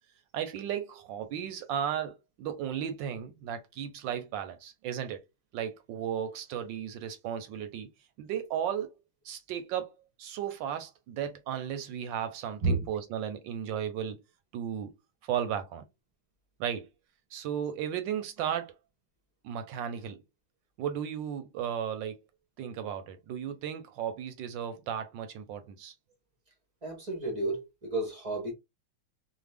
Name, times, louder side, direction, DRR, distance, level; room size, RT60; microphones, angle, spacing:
voice 1, 0.3-5.2 5.5-7.9 8.2-9.0 9.2-9.9 10.2-14.2 14.5-14.9 15.2-15.8 16.6-16.9 17.3-18.7 19.4-20.2 20.8-22.2 22.6-25.9, right 9 dB, 75° right, 1.2 m, -35 dB
voice 2, 26.8-28.5, right 2 dB, 50° right, 0.4 m, -31 dB
3.3 x 2.1 x 3.3 m
omnidirectional pair, 2.3 m